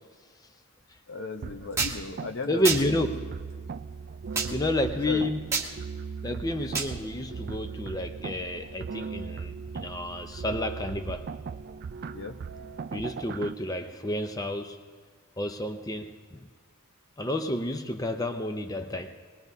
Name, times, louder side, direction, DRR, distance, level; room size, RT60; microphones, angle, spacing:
voice 1, 1.1-3.1 5.1-5.2 12.1-12.4, left 3 dB, 55° left, 9 dB, 0.7 m, -36 dB
sound 1, 1.4-13.5, right 5 dB, 45° right, 0.3 m, -38 dB
sound 2, 1.8-2.0 2.6-2.8 4.3-4.5 5.5-5.7 6.7-6.9, right 5 dB, 15° right, 1.1 m, -27 dB
voice 2, 2.5-3.3 4.5-5.5 6.2-11.3 12.9-14.8 15.4-16.4 17.2-19.2, left 1 dB, 15° left, 7 dB, 0.6 m, -30 dB
23.0 x 20.0 x 2.7 m, 1.6 s
head